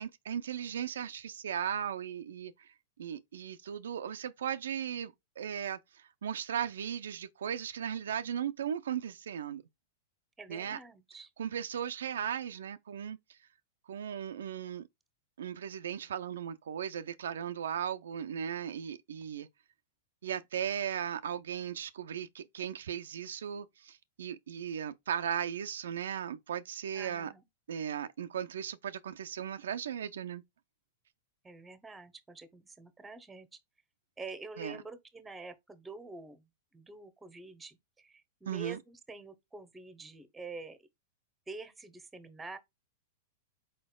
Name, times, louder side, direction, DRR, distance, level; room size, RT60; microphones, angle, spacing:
voice 1, 0.0-2.7 3.0-9.6 10.5-10.8 11.4-13.4 13.9-14.9 15.4-19.5 20.2-27.3 27.7-30.4 34.6-34.8 38.5-38.8, right 9 dB, 80° right, 0.4 m, -37 dB
voice 2, 10.4-11.3 26.9-27.4 31.4-33.6 34.2-36.5 36.7-40.9 41.5-42.6, right 3 dB, 10° right, 0.8 m, -47 dB
4.5 x 4.2 x 2.2 m
hypercardioid pair, 110°, 0 cm